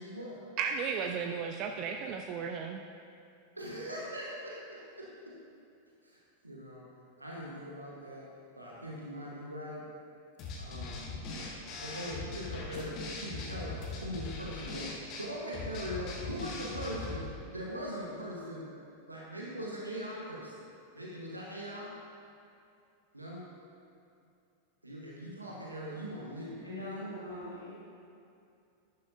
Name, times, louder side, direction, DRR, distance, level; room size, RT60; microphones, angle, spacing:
voice 1, 0.0-0.4 3.5-5.3 6.0-6.9 7.2-8.3 8.6-9.8 10.6-11.5 11.8-18.7 19.1-20.5 20.9-21.9 23.1-23.4 24.8-27.1, equal, 85° right, -4 dB, 1.4 m, -41 dB
voice 2, 0.6-2.8, right 6 dB, 40° right, 4 dB, 0.5 m, -34 dB
sound 1, 10.4-17.2, left 3 dB, 35° left, 1.6 m, -40 dB
voice 3, 26.6-27.7, left 1 dB, 85° left, -9 dB, 2.0 m, -41 dB
11.5 x 10.5 x 2.7 m, 2.6 s
figure-of-eight pair, 90°, 0 cm